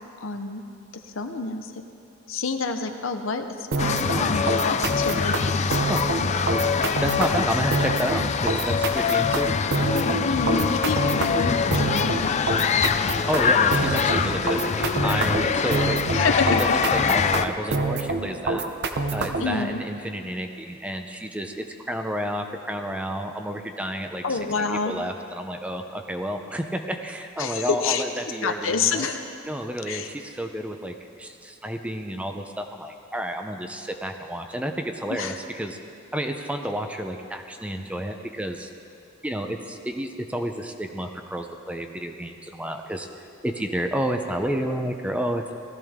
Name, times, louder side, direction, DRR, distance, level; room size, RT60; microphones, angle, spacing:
voice 1, 0.2-0.6 1.1-1.7 2.3-4.0 4.3-5.4 10.2-11.5 11.7-12.1 16.1-16.7 19.4-19.8 24.2-24.9 27.4-28.0 28.4-29.2 29.9-30.1 35.1-35.4, left 4 dB, 75° left, 6 dB, 0.9 m, -27 dB
sound 1, 3.7-19.6, right 3 dB, 55° right, 0.8 m, -27 dB
sound 2, 3.8-17.5, left 5 dB, 35° left, 0.4 m, -24 dB
voice 2, 4.1-4.5 5.9-6.0 7.0-9.5 13.3-16.0 16.4-18.6 19.1-24.4 24.8-29.1 29.4-35.8 36.1-38.7 39.2-43.1 43.4-45.5, equal, 5° right, 5 dB, 0.6 m, -30 dB
18.0 x 14.0 x 3.6 m, 2.5 s
head